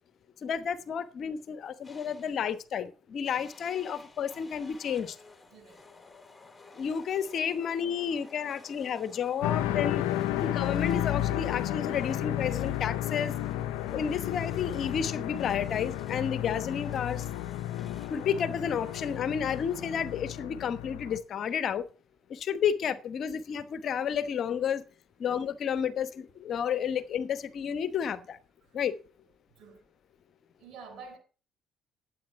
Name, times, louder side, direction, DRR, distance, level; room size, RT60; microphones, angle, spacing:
voice 1, 0.4-5.2 6.7-10.1 10.3-13.3 13.9-17.2 18.1-21.8 22.3-24.8 25.2-28.4 28.7-29.0, left 7 dB, 55° left, 1.0 m, -31 dB
sound 1, 1.8-2.5 3.3-20.6, left 3 dB, 20° left, 3.1 m, -53 dB
voice 2, 5.5-5.9 28.6-28.8 29.5-29.9 30.6-31.2, right 5 dB, 60° right, 3.9 m, -48 dB
sound 2, 9.4-21.2, left 13 dB, 80° left, 0.7 m, -32 dB
12.0 x 8.6 x 4.8 m
hypercardioid pair, 50°, 0 cm